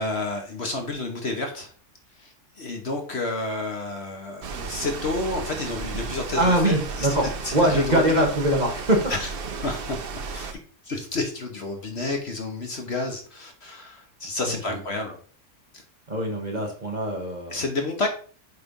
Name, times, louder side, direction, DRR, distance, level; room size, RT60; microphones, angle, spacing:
voice 1, 0.0-1.7 2.2-7.1 7.4-8.2 9.1-9.3 9.6-10.0 10.3-10.6 10.8-15.2 17.5-18.1, left 2 dB, 45° left, 3 dB, 1.3 m, -30 dB
sound 1, 4.4-10.5, right 4 dB, 50° right, 0.7 m, -34 dB
voice 2, 6.4-9.0 14.7-14.8 16.1-17.6, right 1 dB, 30° right, 1 dB, 1.4 m, -23 dB
8.1 x 3.3 x 5.3 m, 0.44 s
omnidirectional pair, 1.6 m